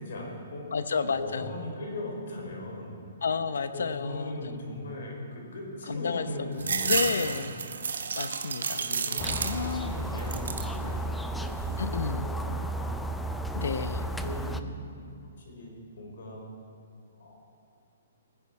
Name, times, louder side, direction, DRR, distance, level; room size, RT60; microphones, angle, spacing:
voice 1, 0.0-0.7 1.1-3.0 3.7-7.4 8.8-13.0 13.8-14.7 14.9-15.1 15.4-16.4 17.2-17.3, left 1 dB, 65° left, -1 dB, 4.2 m, -39 dB
voice 2, 0.7-1.5 3.2-4.6 5.9-7.5 8.2-10.0 11.8-12.3 13.5-14.1, left 5 dB, 85° left, 12 dB, 0.8 m, -31 dB
sound 1, 6.6-9.9 10.2-10.8 11.2-12.0, right 5 dB, 85° right, 0.9 m, -31 dB
sound 2, 9.2-14.6, right 1 dB, 5° left, 0.3 m, -33 dB
20.0 x 10.5 x 4.7 m, 2.5 s
hypercardioid pair, 175°, 0 cm